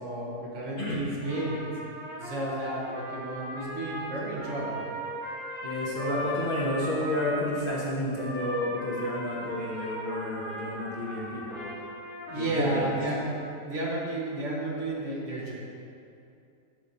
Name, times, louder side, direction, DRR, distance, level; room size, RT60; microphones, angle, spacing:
voice 1, 0.0-1.6 2.2-4.8 12.3-15.5, right 1 dB, 55° right, -4 dB, 1.4 m, -32 dB
voice 2, 0.8-1.1 5.6-11.7 12.3-12.9, left 1 dB, 40° left, -6 dB, 1.0 m, -31 dB
Trumpet, 1.2-7.7 8.1-13.5, equal, 10° right, 1.1 m, -38 dB
6.2 x 4.2 x 5.3 m, 2.6 s
omnidirectional pair, 1.6 m